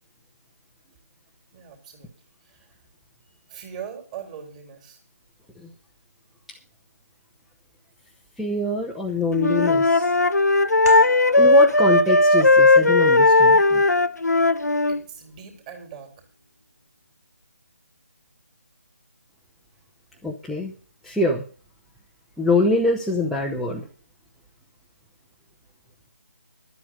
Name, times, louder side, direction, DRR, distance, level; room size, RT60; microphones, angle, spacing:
voice 1, 1.5-2.1 2.4-2.8 3.5-5.0 14.9-16.3, right 8 dB, 25° right, 3 dB, 3.6 m, -40 dB
voice 2, 8.4-10.1 11.4-13.8 20.2-20.7 21.0-21.4 22.4-23.8, left 2 dB, ahead, -4 dB, 0.8 m, -24 dB
Wind instrument woodwind instrument, 9.4-15.0, left 2 dB, 90° left, 0.9 m, -17 dB
sound 1, 10.8-16.1, right 1 dB, 85° right, 4.3 m, -42 dB
12.0 x 8.5 x 6.5 m, 0.38 s
figure-of-eight pair, 155°, 9 cm